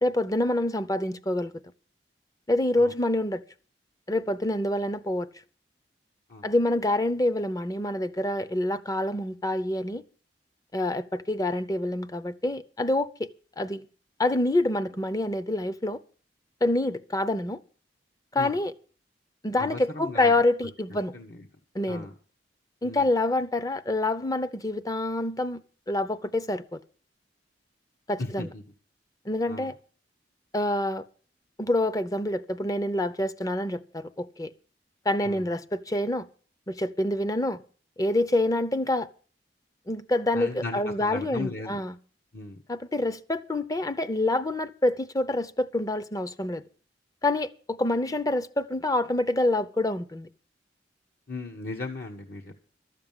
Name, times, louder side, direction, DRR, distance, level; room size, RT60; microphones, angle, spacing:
voice 1, 0.0-1.5 2.5-3.4 4.1-5.3 6.4-10.0 10.7-13.3 13.6-13.8 14.2-16.0 16.6-17.6 18.3-18.7 19.4-21.1 21.7-22.1 22.8-25.6 25.9-26.8 28.1-28.5 29.3-29.7 30.5-31.0 31.6-34.5 35.1-36.3 36.7-37.6 38.0-39.1 39.9-41.9 42.7-46.6 47.2-50.3, left 1 dB, 20° left, 0.8 m, -26 dB
voice 2, 19.6-20.3 21.1-21.5 21.9-22.1 22.8-23.1 28.2-28.6 29.5-29.7 35.2-35.4 40.3-41.8 42.3-42.6 51.3-52.6, left 3 dB, 60° left, 1.5 m, -37 dB
13.0 x 7.6 x 9.0 m
head